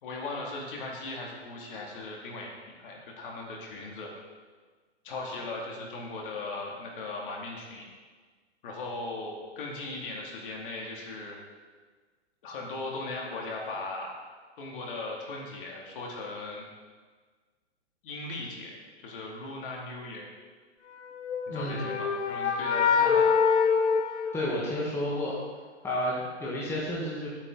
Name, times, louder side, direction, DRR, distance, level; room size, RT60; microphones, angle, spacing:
voice 1, 0.0-4.1 5.0-7.8 8.6-11.4 12.4-14.1 14.6-16.6 18.0-18.8 19.0-20.3 21.5-23.4, left 2 dB, 45° left, -1 dB, 2.8 m, -38 dB
sound 1, 21.2-25.1, left 6 dB, 75° left, 1.0 m, -25 dB
voice 2, 21.5-21.9 24.3-25.4 25.8-27.3, left 1 dB, 5° left, -6 dB, 1.6 m, -31 dB
12.0 x 8.5 x 4.0 m, 1.5 s
hypercardioid pair, 140°, 36 cm